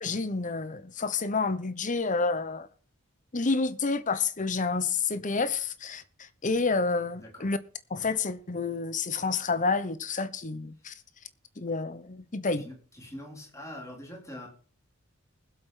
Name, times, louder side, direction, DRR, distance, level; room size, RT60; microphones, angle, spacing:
voice 1, 0.0-2.7 3.3-6.0 6.4-7.6 7.9-10.9 11.6-12.7, left 4 dB, 35° left, 1.0 m, -29 dB
voice 2, 12.6-14.5, left 1 dB, 15° left, 3.9 m, -43 dB
20.5 x 8.1 x 3.9 m
head